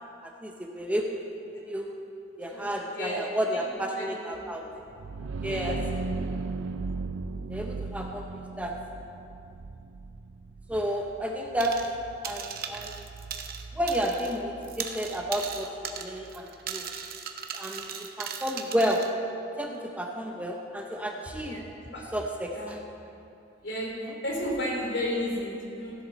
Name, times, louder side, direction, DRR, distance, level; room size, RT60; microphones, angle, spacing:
voice 1, 0.2-1.2 1.7-1.9 2.4-4.7 5.4-5.8 7.5-8.2 8.6-8.7 10.7-11.9 12.2-13.1 13.7-16.9 17.5-19.0 19.6-21.6 22.1-22.8, equal, 10° right, 1 dB, 0.7 m, -31 dB
voice 2, 2.5-3.2 3.5-3.7 4.0-4.4 5.4-5.8 6.1-6.2 17.8-17.9 21.3-22.0 22.5-22.8 23.6-23.9 24.2-25.9, left 1 dB, 65° left, -3 dB, 3.3 m, -33 dB
sound 1, 4.8-16.4, right 3 dB, 85° right, 0.4 m, -38 dB
sound 2, 11.6-12.0 12.2-14.4 14.6-19.1, right 7 dB, 50° right, 0.8 m, -38 dB
15.5 x 10.5 x 4.0 m, 2.7 s
head